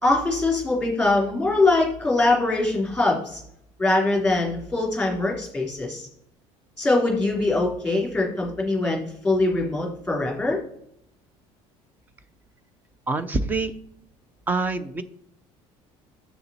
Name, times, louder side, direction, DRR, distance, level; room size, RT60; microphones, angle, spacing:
voice 1, 0.0-3.4 3.8-6.1 6.8-10.6, left 2 dB, 5° left, -1 dB, 2.9 m, -22 dB
voice 2, 13.1-13.7 14.5-15.0, right 3 dB, 15° right, 13 dB, 0.5 m, -25 dB
7.0 x 6.9 x 4.2 m, 0.70 s
cardioid pair, 175°, 12 cm